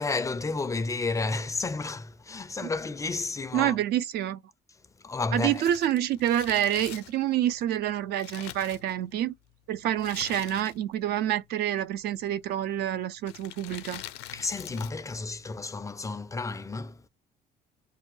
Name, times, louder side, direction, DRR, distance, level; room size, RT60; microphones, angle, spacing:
voice 1, 0.0-3.8 5.0-5.6 14.3-17.0, left 3 dB, 20° left, 0.3 m, -31 dB
voice 2, 3.5-4.4 5.3-9.3 9.7-14.0, right 11 dB, 70° right, 0.4 m, -27 dB
Crumpling crinkling, 5.3-9.3 10.0-11.0 11.3-11.4 12.2-12.5 13.2-15.1 15.4-15.5, left 14 dB, 90° left, 0.4 m, -44 dB
2.7 x 2.2 x 3.1 m
cardioid pair, 110°, 17 cm